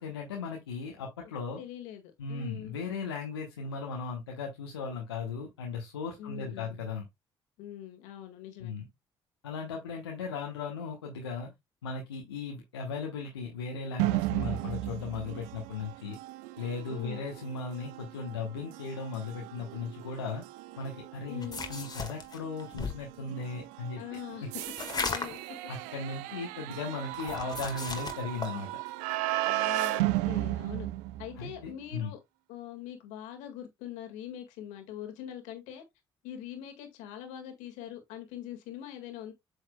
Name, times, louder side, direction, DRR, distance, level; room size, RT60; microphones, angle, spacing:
voice 1, 0.0-1.6 2.2-7.0 8.6-8.9 9.4-11.5 11.8-16.2 16.6-20.4 20.8-24.0 25.7-28.8 31.4-32.1, left 4 dB, 90° left, 1.1 m, -37 dB
voice 2, 1.6-2.7 6.2-6.8 7.6-8.7 16.9-17.2 21.3-21.6 24.0-24.5 24.9-25.4 28.5-28.6 29.5-30.9 31.2-32.2 32.5-35.8 36.2-39.3, left 10 dB, 75° left, 1.8 m, -43 dB
sound 1, 14.0-31.7, right 18 dB, 75° right, 0.5 m, -35 dB
sound 2, 21.4-23.1 24.6-25.5 27.1-28.5, left 4 dB, 30° left, 1.7 m, -36 dB
8.1 x 6.4 x 2.2 m
hypercardioid pair, 45°, 13 cm